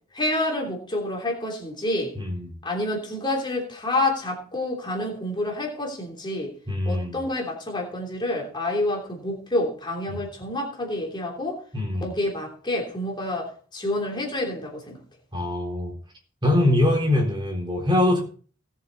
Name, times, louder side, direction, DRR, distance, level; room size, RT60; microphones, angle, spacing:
voice 1, 0.1-2.1 2.6-6.5 6.8-11.6 12.0-15.0, left 1 dB, 25° left, -1 dB, 3.1 m, -28 dB
voice 2, 2.2-2.6 6.7-7.2 10.1-10.2 11.7-12.2 15.3-15.9 16.4-18.2, left 1 dB, 25° right, 1 dB, 3.8 m, -23 dB
18.5 x 7.3 x 4.0 m, 0.43 s
head